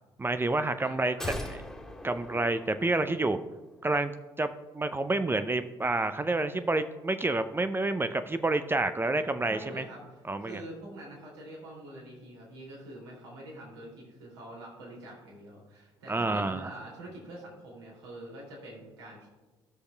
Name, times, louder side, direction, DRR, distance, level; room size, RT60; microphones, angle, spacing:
voice 1, 0.2-1.2 2.0-3.4 3.8-4.5 4.7-9.8 10.3-10.6 16.1-16.7, right 2 dB, 15° right, 10 dB, 0.5 m, -28 dB
voice 2, 0.8-1.4 9.5-19.3, right 1 dB, 80° right, -3 dB, 2.7 m, -45 dB
sound 1, 1.2-3.6 3.8-3.9, left 1 dB, 5° left, 1.7 m, -40 dB
18.0 x 6.4 x 2.3 m, 1.2 s
figure-of-eight pair, 55°, 14 cm